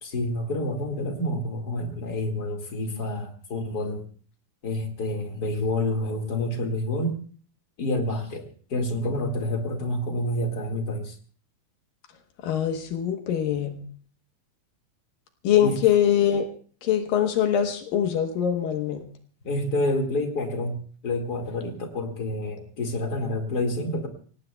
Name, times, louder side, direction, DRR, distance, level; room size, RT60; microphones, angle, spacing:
voice 1, 0.0-4.0 4.6-7.2 7.8-11.2 15.6-15.8 19.4-24.1, left 1 dB, 35° left, 3 dB, 1.8 m, -28 dB
voice 2, 12.4-13.7 15.4-16.5 16.8-19.0, left 9 dB, 75° left, 5 dB, 2.8 m, -23 dB
27.0 x 18.0 x 2.3 m, 0.43 s
omnidirectional pair, 4.1 m